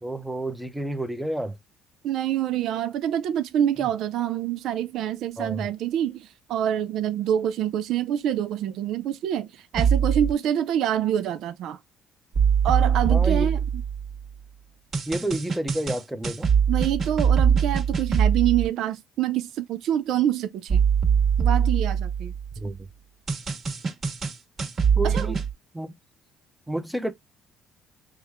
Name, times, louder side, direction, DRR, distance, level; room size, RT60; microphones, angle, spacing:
voice 1, 0.0-1.6 5.4-5.6 13.1-13.5 15.1-16.5 22.6-22.8 25.0-25.4 25.7-25.9 26.7-27.1, right 1 dB, 5° right, 0.7 m, -30 dB
voice 2, 2.0-11.8 12.6-13.8 16.7-20.8 21.4-22.3 25.0-25.4, right 10 dB, 70° right, 0.4 m, -26 dB
sound 1, 9.7-10.3 12.3-14.2 14.9-18.7 20.7-22.6 23.3-25.5, right 7 dB, 45° right, 1.6 m, -22 dB
6.1 x 2.2 x 3.5 m
cardioid pair, 115°, 0 cm